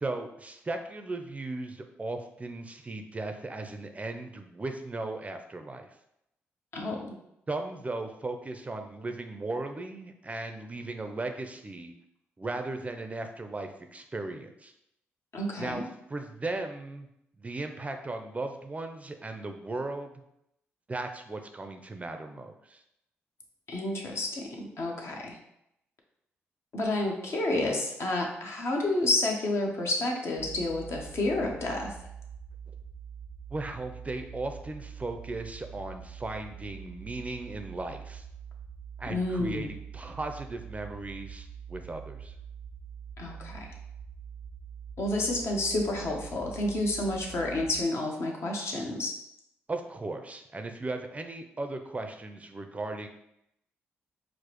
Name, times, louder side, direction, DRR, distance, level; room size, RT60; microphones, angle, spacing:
voice 1, 0.0-5.9 7.5-11.9 12.4-14.7 15.6-15.8 16.1-17.1 17.4-20.1 20.9-22.8 33.5-38.2 39.0-42.3 49.7-53.1, right 2 dB, 25° right, 6 dB, 0.4 m, -37 dB
voice 2, 6.7-7.2 15.3-15.8 23.7-25.4 26.7-31.9 39.1-39.7 43.2-43.7 45.0-49.2, left 2 dB, 55° left, 0 dB, 0.8 m, -30 dB
sound 1, 30.4-47.8, right 7 dB, 85° right, 0.4 m, -44 dB
4.7 x 2.0 x 2.9 m, 0.80 s
supercardioid pair, 55°, 5 cm